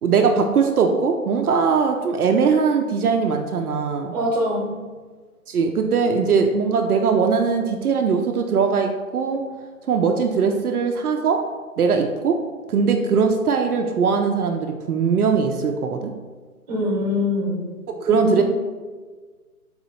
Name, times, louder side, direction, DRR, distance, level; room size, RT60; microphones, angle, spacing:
voice 1, 0.0-4.1 5.5-9.4 9.9-11.4 11.8-12.4 12.7-16.1 17.9-18.4, right 5 dB, 75° right, 4 dB, 0.6 m, -20 dB
voice 2, 4.1-4.7 16.7-17.6 18.1-18.4, left 1 dB, 25° right, -2 dB, 1.0 m, -23 dB
3.9 x 2.8 x 4.1 m, 1.4 s
hypercardioid pair, 150°, 45 cm